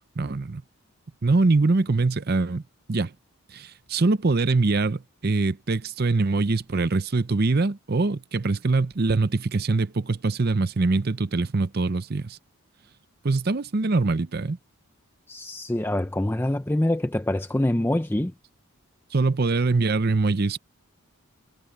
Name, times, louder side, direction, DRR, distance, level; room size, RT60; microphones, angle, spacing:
voice 1, 0.2-0.6 1.2-2.6 2.9-3.1 3.5-12.4 13.2-14.6 19.1-20.6, right 3 dB, 45° right, 0.6 m, -23 dB
voice 2, 15.3-18.3, left 1 dB, 10° left, 0.5 m, -25 dB
head